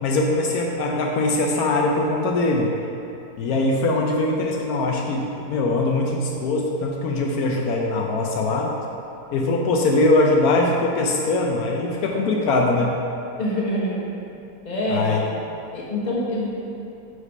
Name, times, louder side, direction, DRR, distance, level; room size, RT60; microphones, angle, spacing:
voice 1, 0.0-2.7 3.4-8.7 9.3-12.9 14.9-15.2, left 2 dB, 80° left, 0 dB, 1.1 m, -21 dB
voice 2, 13.4-14.0 14.6-15.2 15.7-16.5, left 1 dB, 30° left, -5 dB, 1.2 m, -25 dB
5.0 x 4.9 x 5.4 m, 2.8 s
omnidirectional pair, 1.5 m